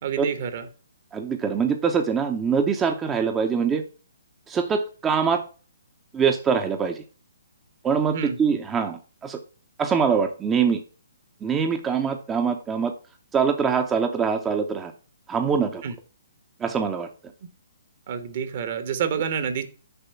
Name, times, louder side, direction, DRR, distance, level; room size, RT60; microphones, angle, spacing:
voice 1, 0.0-0.7 8.1-8.4 15.8-15.9 18.1-19.6, right 7 dB, 50° right, 10 dB, 1.2 m, -28 dB
voice 2, 1.1-3.8 4.5-5.4 6.1-7.0 7.8-9.4 9.8-10.8 11.4-12.9 13.3-14.9 15.3-15.8 16.6-17.1, right 6 dB, 15° right, 5 dB, 0.7 m, -23 dB
6.9 x 4.9 x 5.7 m, 0.38 s
hypercardioid pair, 135°, 0 cm